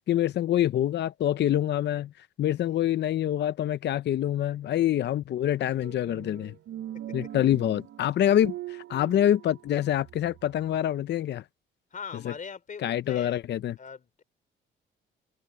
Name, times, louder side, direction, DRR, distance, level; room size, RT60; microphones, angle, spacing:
voice 1, 0.1-6.5 7.1-11.4 12.2-12.3 12.8-13.8, left 11 dB, 60° left, 0.6 m, -26 dB
voice 2, 2.5-2.9 11.9-13.4 13.8-14.2, left 6 dB, 40° left, 3.3 m, -42 dB
sound 1, 5.8-10.8, right 12 dB, 70° right, 0.7 m, -42 dB
cardioid pair, 90°, 20 cm